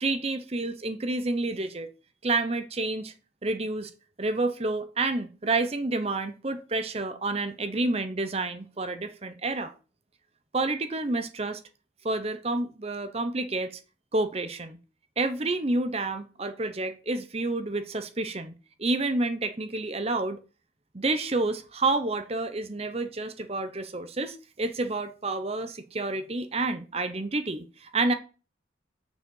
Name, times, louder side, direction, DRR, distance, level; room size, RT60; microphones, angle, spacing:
voice 1, 0.0-1.9 2.2-3.1 3.4-3.9 4.2-9.7 10.5-11.6 12.0-13.8 14.1-14.8 15.2-18.5 18.8-20.4 20.9-28.1, right 2 dB, 30° right, 0.7 m, -29 dB
6.6 x 4.9 x 6.3 m
head